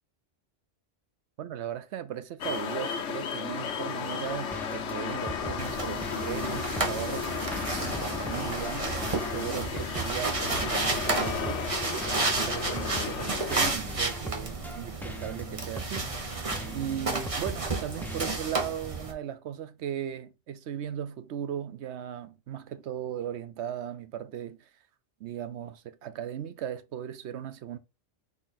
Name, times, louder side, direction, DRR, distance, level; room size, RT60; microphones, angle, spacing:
voice 1, 1.4-7.5 7.8-11.6 12.1-16.1 16.7-24.7 25.2-27.8, right 10 dB, 70° right, 0.9 m, -37 dB
sound 1, 2.4-13.8, left 7 dB, 75° left, 1.1 m, -34 dB
sound 2, 4.3-18.4, right 1 dB, ahead, 0.4 m, -41 dB
sound 3, 5.6-19.1, right 3 dB, 30° right, 0.9 m, -32 dB
4.1 x 3.2 x 4.1 m
omnidirectional pair, 1.2 m